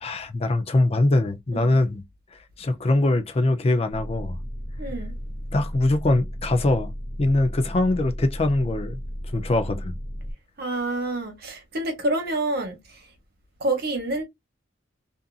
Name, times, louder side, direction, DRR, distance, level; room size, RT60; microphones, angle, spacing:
voice 1, 0.0-2.0 2.6-4.4 5.5-6.9 7.2-9.0 9.3-9.9, left 2 dB, 30° left, 0.4 m, -22 dB
sound 1, 3.9-10.3, equal, 30° right, 0.7 m, -34 dB
voice 2, 4.8-5.1 10.6-13.0 13.6-14.2, right 2 dB, 55° right, 1.1 m, -28 dB
2.5 x 2.5 x 2.3 m
head